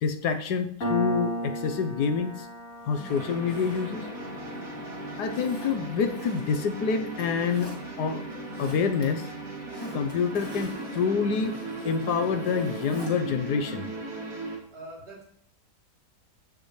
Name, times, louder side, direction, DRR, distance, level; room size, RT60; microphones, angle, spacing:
voice 1, 0.0-2.5 2.9-4.1 5.2-7.7 8.0-8.2 8.6-9.3 9.9-11.6 11.8-13.8, left 6 dB, 75° left, 7 dB, 1.5 m, -27 dB
Piano, 0.8-8.0, equal, 60° left, 3.0 m, -36 dB
Zipper (clothing), 2.8-4.7 5.3-6.7 7.1-7.8 8.3-9.0 9.4-13.1 13.5-13.6, equal, 15° left, 2.2 m, -45 dB
sound 1, 3.1-14.6, right 2 dB, 55° right, 3.3 m, -37 dB
voice 2, 14.7-15.2, right 1 dB, 85° right, -4 dB, 4.6 m, -43 dB
15.0 x 7.6 x 3.2 m, 0.67 s
omnidirectional pair, 1.8 m